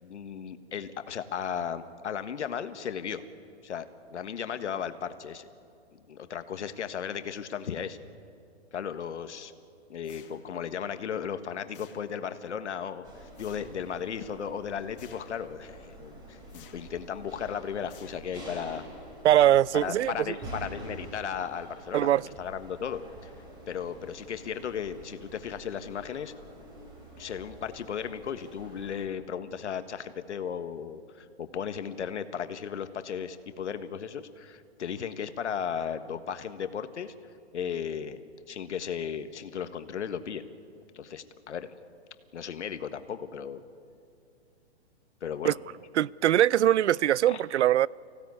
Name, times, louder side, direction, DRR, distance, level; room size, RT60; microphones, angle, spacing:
voice 1, 0.0-3.2 3.6-5.5 5.9-8.0 8.7-9.5 9.9-18.8 19.7-23.3 23.7-26.3 27.2-37.1 37.5-38.2 38.5-40.4 40.9-41.8 42.3-43.6 45.2-45.6 47.3-47.4, left 7 dB, 85° left, 1.5 m, -35 dB
sound 1, 10.0-10.7 11.7-12.4 13.3-13.9 15.0-15.5 16.5-17.0 17.9-18.6, left 8 dB, 50° left, 2.0 m, -56 dB
sound 2, 13.0-29.0, right 1 dB, 15° right, 3.4 m, -47 dB
voice 2, 19.2-20.1 21.9-22.2 45.4-45.5 46.0-47.9, right 12 dB, 80° right, 0.6 m, -22 dB
24.5 x 16.5 x 9.6 m
hypercardioid pair, 170°, 34 cm